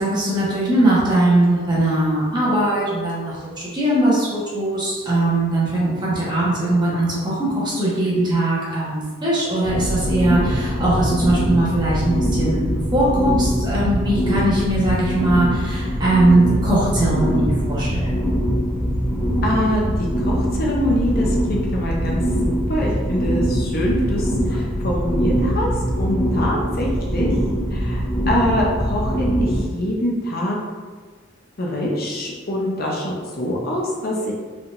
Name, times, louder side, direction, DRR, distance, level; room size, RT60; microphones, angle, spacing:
voice 1, 0.0-18.2, right 1 dB, 20° right, -7 dB, 1.1 m, -20 dB
sound 1, 9.6-29.6, equal, 20° left, 1.2 m, -22 dB
voice 2, 19.4-22.2 22.5-25.7 26.0-27.3 27.7-30.6 31.6-34.3, equal, 45° left, -2 dB, 0.6 m, -24 dB
4.6 x 3.6 x 2.5 m, 1.5 s
head